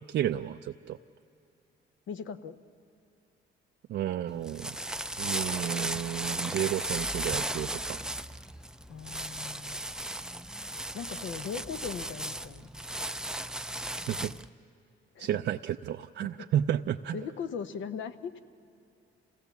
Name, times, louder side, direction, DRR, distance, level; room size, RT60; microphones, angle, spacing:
voice 1, 0.1-1.0 3.9-4.8 5.2-8.0 14.1-14.3 15.2-17.2, right 11 dB, 60° right, 6 dB, 0.4 m, -32 dB
voice 2, 2.1-2.6 8.9-9.8 10.9-12.7 15.1-15.3 16.2-16.5 17.1-18.4, left 6 dB, 70° left, 10 dB, 0.9 m, -39 dB
sound 1, 4.3-14.5, right 1 dB, 5° right, 0.4 m, -36 dB
27.0 x 17.0 x 7.1 m, 2.7 s
cardioid pair, 90°, 20 cm